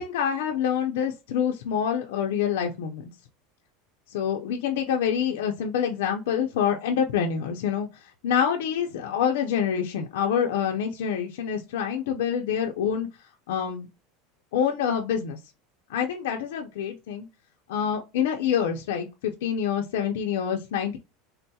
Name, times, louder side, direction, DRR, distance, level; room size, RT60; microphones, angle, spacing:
voice 1, 0.0-3.1 4.1-7.9 8.2-13.1 13.5-13.9 14.5-15.4 15.9-17.3 17.7-21.0, left 8 dB, 85° left, 0.5 m, -26 dB
3.7 x 2.3 x 2.7 m
supercardioid pair, 145°, 0 cm